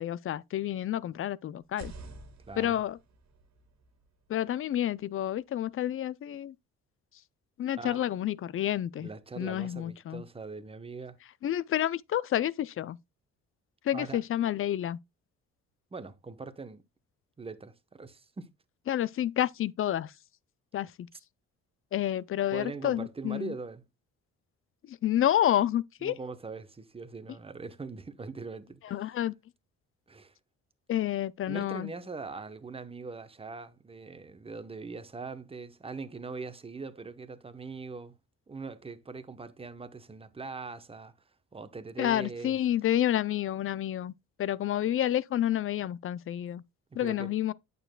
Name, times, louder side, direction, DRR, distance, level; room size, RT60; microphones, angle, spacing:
voice 1, 0.0-1.9 2.6-3.0 4.3-6.5 7.6-9.1 9.4-10.2 11.4-13.0 13.8-15.0 18.9-20.1 20.7-21.1 21.9-23.5 24.9-26.1 28.8-29.3 30.9-31.9 42.0-44.1 44.4-46.6 47.0-47.5, left 11 dB, 45° left, 0.4 m, -29 dB
sound 1, 1.6-5.4, right 3 dB, 60° right, 1.8 m, -50 dB
voice 2, 2.5-2.8 7.8-8.0 9.0-11.2 13.9-14.2 15.9-16.8 17.4-18.5 22.5-23.8 26.0-28.8 30.1-30.3 31.5-38.1 38.5-41.1 41.5-42.6 46.9-47.3, right 4 dB, 20° right, 0.9 m, -41 dB
8.7 x 6.8 x 2.2 m
cardioid pair, 90°, 30 cm